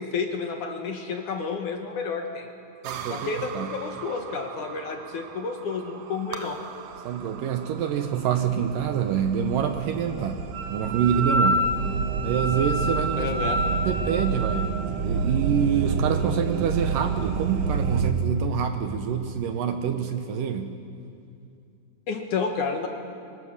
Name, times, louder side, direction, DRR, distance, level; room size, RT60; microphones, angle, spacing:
voice 1, 0.0-2.5 3.1-6.6 13.2-13.6 22.1-22.9, left 5 dB, 60° left, 4 dB, 2.5 m, -30 dB
voice 2, 2.8-3.8 7.0-11.7 12.2-13.3 13.9-14.7 15.0-20.8, right 8 dB, 70° right, 7 dB, 2.3 m, -26 dB
sound 1, 2.8-18.1, right 5 dB, 85° right, 1.4 m, -30 dB
Wind instrument woodwind instrument, 10.5-14.5, left 1 dB, 15° right, 6.3 m, -28 dB
24.5 x 23.5 x 6.6 m, 2.5 s
omnidirectional pair, 4.5 m